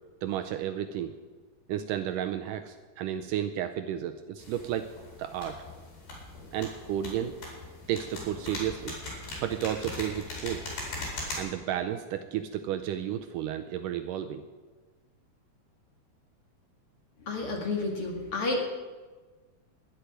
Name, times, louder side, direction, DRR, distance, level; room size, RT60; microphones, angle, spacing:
voice 1, 0.2-1.1 1.7-4.9 5.2-5.6 6.5-7.4 7.9-9.0 9.4-10.7 11.4-14.4, right 10 dB, 80° right, 8 dB, 2.1 m, -32 dB
sound 1, 4.4-11.4, left 2 dB, 80° left, 6.6 m, -40 dB
voice 2, 17.2-18.6, left 2 dB, 45° left, 1 dB, 2.5 m, -30 dB
11.5 x 11.5 x 9.3 m, 1.3 s
omnidirectional pair, 4.2 m